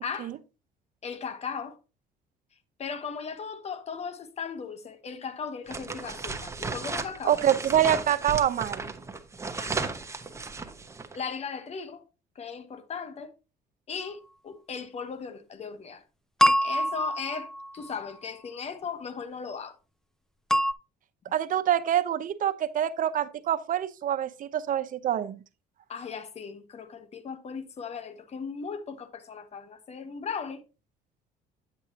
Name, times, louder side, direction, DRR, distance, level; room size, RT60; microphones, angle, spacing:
voice 1, 0.0-0.3 1.0-1.8 2.8-7.4 9.6-10.0 11.1-12.0 12.3-13.3 13.9-16.0 16.6-17.5 17.7-19.8 25.9-30.6, left 6 dB, 40° left, 1.2 m, -37 dB
sound 1, 5.7-11.2, right 4 dB, 15° right, 1.0 m, -35 dB
voice 2, 7.2-8.8 21.3-25.4, right 10 dB, 50° right, 0.8 m, -26 dB
sound 2, 16.4-18.0 20.5-20.7, equal, 5° left, 0.4 m, -25 dB
9.5 x 8.0 x 2.9 m
cardioid pair, 110°, 17 cm